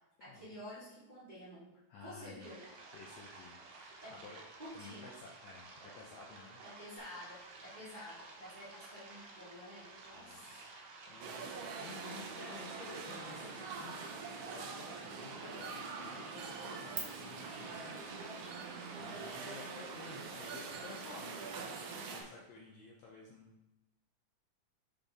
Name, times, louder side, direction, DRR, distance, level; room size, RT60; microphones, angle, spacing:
voice 1, 0.2-1.7 2.0-2.6 4.0-4.2 4.6-5.1 6.6-10.7, left 1 dB, 15° right, -12 dB, 1.8 m, -50 dB
voice 2, 1.9-2.5 2.9-4.4 4.7-6.6 10.1-10.4 11.1-11.5 11.8-14.0 14.4-23.5, left 4 dB, 75° left, -3 dB, 1.7 m, -53 dB
sound 1, 2.4-22.3, right 3 dB, 70° right, 2.1 m, -53 dB
sound 2, 7.0-17.0, right 10 dB, 55° right, 1.8 m, -57 dB
sound 3, 11.2-22.2, right 4 dB, 90° right, 1.3 m, -44 dB
5.7 x 5.3 x 3.5 m, 0.96 s
omnidirectional pair, 3.7 m